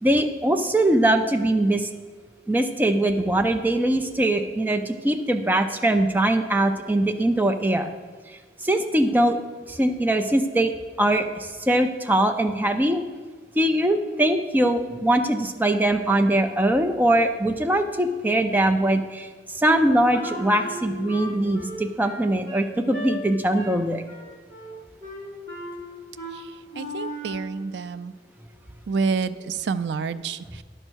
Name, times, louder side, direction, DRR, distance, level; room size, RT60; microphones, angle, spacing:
voice 1, 0.0-1.9 2.5-7.9 8.3-9.4 9.7-10.7 11.0-13.0 13.5-24.0, right 1 dB, 10° right, 5 dB, 0.4 m, -22 dB
Wind instrument woodwind instrument, 19.7-23.1 23.5-23.8 24.1-24.7 25.0-25.8 26.2-26.4 26.7-27.4, equal, 20° left, 2.4 m, -36 dB
voice 2, 26.3-28.1 28.9-30.6, right 5 dB, 70° right, 13 dB, 0.3 m, -28 dB
9.9 x 5.5 x 6.2 m, 1.4 s
head